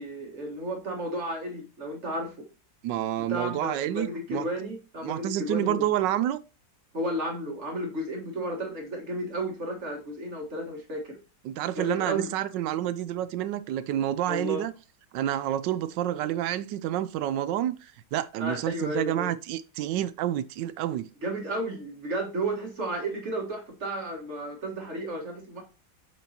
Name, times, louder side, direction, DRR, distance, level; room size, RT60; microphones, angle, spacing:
voice 1, 0.0-2.3 3.2-5.9 6.9-11.2 11.8-12.3 14.3-14.6 18.4-19.3 21.2-25.6, right 1 dB, 40° right, 1.8 m, -33 dB
voice 2, 2.8-4.5 5.0-6.4 11.4-14.7 15.1-21.1, right 12 dB, 80° right, 1.2 m, -29 dB
8.1 x 4.6 x 2.8 m
omnidirectional pair, 2.0 m